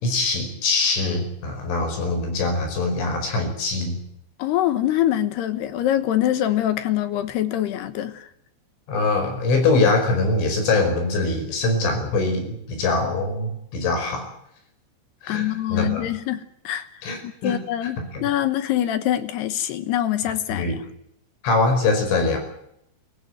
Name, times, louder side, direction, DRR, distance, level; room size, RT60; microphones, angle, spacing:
voice 1, 0.0-4.0 8.9-14.3 15.2-16.1 17.0-18.3 20.5-20.8 21.4-22.4, left 3 dB, 90° left, 7.7 m, -23 dB
voice 2, 4.4-8.3 15.3-16.9 17.2-20.8, left 12 dB, 70° left, 2.9 m, -24 dB
23.5 x 16.5 x 9.4 m
omnidirectional pair, 5.4 m